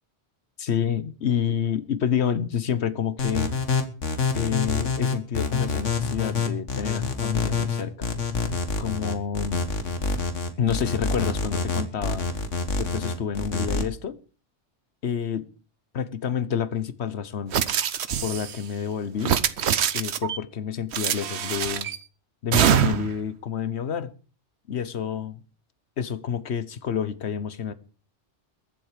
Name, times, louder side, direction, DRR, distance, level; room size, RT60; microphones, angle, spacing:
voice 1, 0.6-3.5 4.3-8.1 8.8-9.6 10.6-12.2 12.8-14.2 15.0-15.4 15.9-17.5 18.2-19.4 19.9-21.9 22.4-24.1 24.7-25.4 26.0-27.7, left 8 dB, 65° left, 1.3 m, -28 dB
sound 1, 3.2-13.8, left 4 dB, 90° left, 2.0 m, -26 dB
sound 2, 17.5-18.6 19.2-20.4 20.9-22.0 22.5-23.2, right 9 dB, 65° right, 1.0 m, -24 dB
22.0 x 7.7 x 5.0 m
omnidirectional pair, 1.2 m